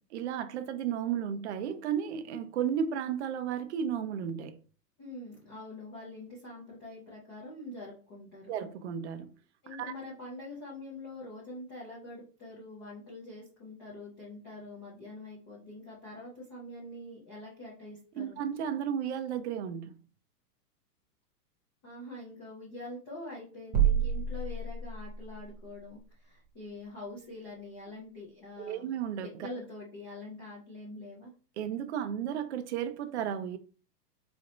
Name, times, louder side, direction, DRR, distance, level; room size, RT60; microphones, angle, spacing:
voice 1, 0.1-4.6 8.5-9.3 9.7-9.9 18.2-20.0 28.6-29.3 31.6-33.6, right 8 dB, 45° right, 0.4 m, -33 dB
voice 2, 5.0-8.5 9.6-18.4 21.8-28.9 29.4-31.3, left 2 dB, 15° left, 0.4 m, -45 dB
sound 1, 23.7-25.3, right 8 dB, 20° right, 0.8 m, -28 dB
4.2 x 3.0 x 2.5 m
hypercardioid pair, 150°, 49 cm